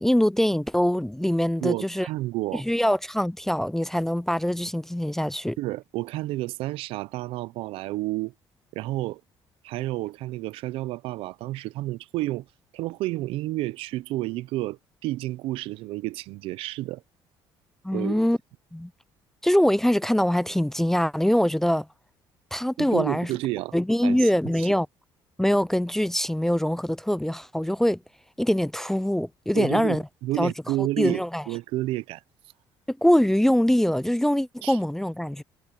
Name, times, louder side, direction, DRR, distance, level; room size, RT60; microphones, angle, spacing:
voice 1, 0.0-2.1 2.5-5.6 17.8-18.4 18.7-18.9 19.4-21.9 22.5-23.3 23.7-24.9 25.4-28.0 28.4-30.0 30.4-30.5 30.8-31.4 32.9-35.4, equal, 5° left, 0.4 m, -23 dB
voice 2, 1.6-2.6 5.6-8.3 8.7-9.2 9.6-12.5 12.7-17.0 17.9-18.3 22.8-23.7 24.0-24.3 24.6-24.7 29.5-32.2 34.6-34.8, right 17 dB, 80° right, 0.6 m, -30 dB
cardioid pair, 105°, 9 cm